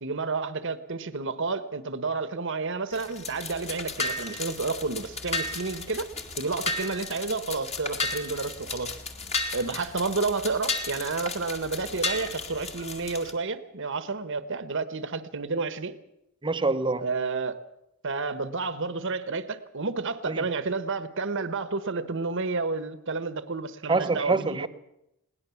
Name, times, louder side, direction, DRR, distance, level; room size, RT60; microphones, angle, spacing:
voice 1, 0.0-6.1 6.4-8.9 9.5-15.9 17.0-17.5 18.0-24.7, right 4 dB, 60° right, 1.3 m, -30 dB
sound 1, 2.9-13.3, left 3 dB, 30° left, 2.2 m, -34 dB
voice 2, 16.4-17.1 20.3-20.4 23.9-24.7, right 3 dB, 20° right, 0.9 m, -26 dB
21.5 x 18.0 x 7.1 m
head